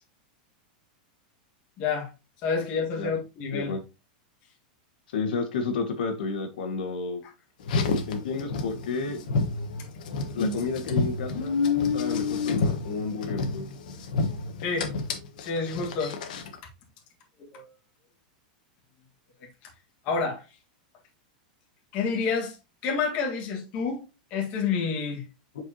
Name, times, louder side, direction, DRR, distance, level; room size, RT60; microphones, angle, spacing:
voice 1, 1.8-2.1 2.4-3.7 14.6-14.9 15.4-16.2 17.5-17.7 20.0-20.4 21.9-22.6 22.8-24.0 24.3-25.2, left 5 dB, 30° left, 1.6 m, -28 dB
voice 2, 5.1-7.2 8.1-9.2 10.3-11.6 11.9-13.7, left 4 dB, 85° left, 1.5 m, -31 dB
Car, 7.6-16.6, left 4 dB, 65° left, 1.3 m, -29 dB
7.7 x 4.7 x 2.8 m
supercardioid pair, 170°, 5 cm